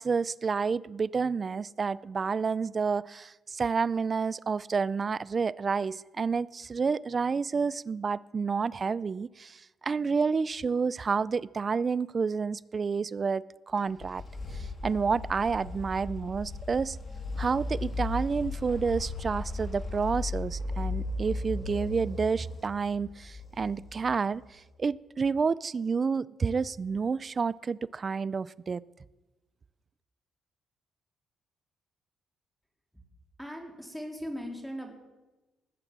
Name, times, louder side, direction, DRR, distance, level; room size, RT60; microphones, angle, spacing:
voice 1, 0.0-14.2 14.5-17.0 17.4-28.8, right 5 dB, 35° right, 20 dB, 0.4 m, -29 dB
sound 1, 13.8-24.6, left 2 dB, 40° left, 3.4 m, -36 dB
voice 2, 33.4-34.9, equal, ahead, 1 dB, 3.4 m, -39 dB
19.5 x 7.9 x 7.4 m, 1.1 s
cardioid pair, 90°, 0 cm